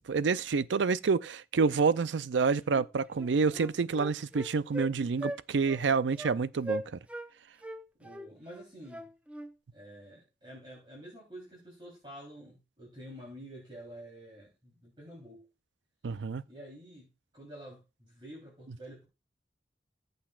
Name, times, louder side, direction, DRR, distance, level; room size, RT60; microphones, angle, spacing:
voice 1, 0.1-6.8 16.0-16.4, right 5 dB, 90° right, 0.5 m, -28 dB
Wind instrument woodwind instrument, 2.7-2.9 3.2-4.9 5.2-5.4 5.7-5.8 6.2-6.4 6.6-7.3 7.6-9.5, equal, 5° right, 0.5 m, -39 dB
voice 2, 8.0-9.0 9.7-15.5 16.5-19.1, equal, 25° right, 3.5 m, -49 dB
14.5 x 7.9 x 2.4 m
head